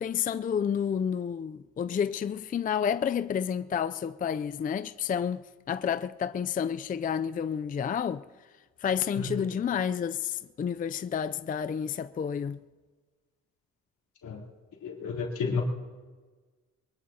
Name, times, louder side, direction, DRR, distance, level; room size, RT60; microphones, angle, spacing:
voice 1, 0.0-8.2 8.8-12.6, left 8 dB, 30° left, 0.4 m, -30 dB
voice 2, 14.8-15.6, left 5 dB, 80° left, 3.3 m, -31 dB
23.0 x 22.0 x 2.8 m
cardioid pair, 90°, 30 cm